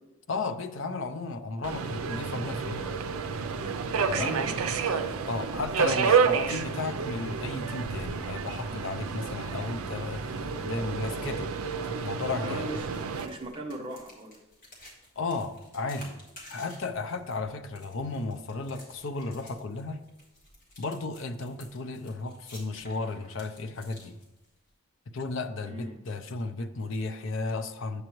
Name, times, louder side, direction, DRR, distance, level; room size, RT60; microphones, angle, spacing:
voice 1, 0.3-3.0 4.1-4.4 5.2-11.5 12.0-12.7 15.2-16.2 16.5-20.0 20.8-24.2 25.1-28.0, left 3 dB, 60° left, 9 dB, 0.6 m, -34 dB
Subway metro underground, 1.6-13.3, right 5 dB, 80° right, 0.5 m, -30 dB
voice 2, 4.0-4.5 5.3-6.0 12.4-13.0 13.2-14.4 25.6-26.0, right 1 dB, 25° right, 0 dB, 0.8 m, -39 dB
sound 1, 12.3-24.7, left 1 dB, 40° left, 1.9 m, -53 dB
8.1 x 7.5 x 3.0 m, 0.95 s
head